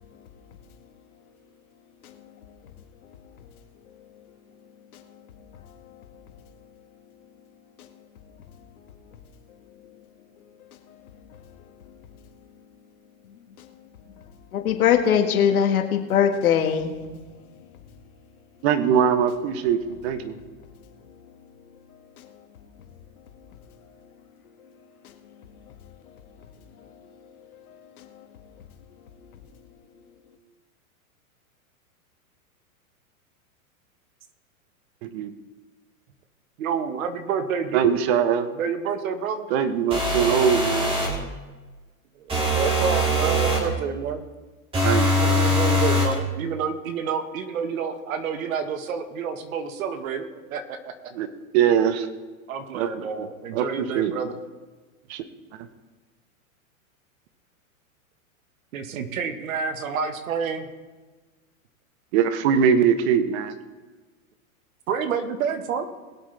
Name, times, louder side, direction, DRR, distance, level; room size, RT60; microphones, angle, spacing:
voice 1, 5.6-6.3 7.8-7.9 9.8-9.9 11.4-11.5 11.9-12.0 13.6-13.7 14.5-17.0 22.2-22.3 25.0-25.1 26.8-28.3, left 8 dB, 80° left, 4 dB, 2.0 m, -24 dB
voice 2, 18.6-20.4 35.0-35.3 37.7-38.5 39.5-40.9 44.8-45.4 51.1-51.3 51.5-52.1 52.7-53.3 53.5-54.2 55.1-55.2 62.1-63.5, right 8 dB, 50° right, 11 dB, 1.2 m, -22 dB
voice 3, 36.6-37.9 38.6-39.5 42.2-42.3 42.5-44.2 45.2-51.1 52.5-54.4 58.7-60.7 64.9-65.8, right 6 dB, 70° right, 8 dB, 1.6 m, -29 dB
sound 1, 39.9-41.2 42.3-43.7 44.7-46.2, equal, 10° right, 2.5 m, -22 dB
21.5 x 8.1 x 3.4 m, 1.3 s
hypercardioid pair, 135°, 42 cm